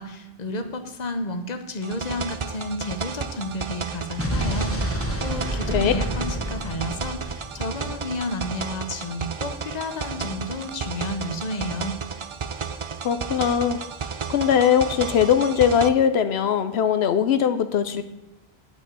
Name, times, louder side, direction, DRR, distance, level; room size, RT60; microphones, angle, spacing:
voice 1, 0.0-12.0, left 2 dB, 45° left, 8 dB, 1.1 m, -31 dB
sound 1, 1.8-15.9, right 6 dB, 40° right, 0.5 m, -33 dB
Explosion, 4.2-8.3, equal, 15° left, 1.3 m, -29 dB
voice 2, 13.0-13.8 14.3-18.0, left 8 dB, 90° left, 10 dB, 0.9 m, -20 dB
9.3 x 6.0 x 8.1 m, 0.99 s
omnidirectional pair, 1.0 m